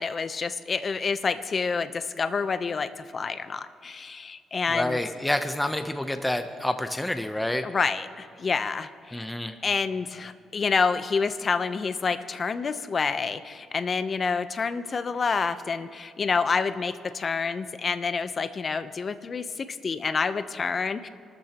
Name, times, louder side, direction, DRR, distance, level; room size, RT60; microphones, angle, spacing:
voice 1, 0.0-5.0 7.6-9.2 9.6-21.1, left 5 dB, 40° left, 11 dB, 0.7 m, -28 dB
voice 2, 4.7-7.7 9.1-9.5, left 1 dB, 10° left, 8 dB, 0.7 m, -28 dB
27.0 x 13.0 x 3.0 m, 2.3 s
cardioid pair, 90°, 0 cm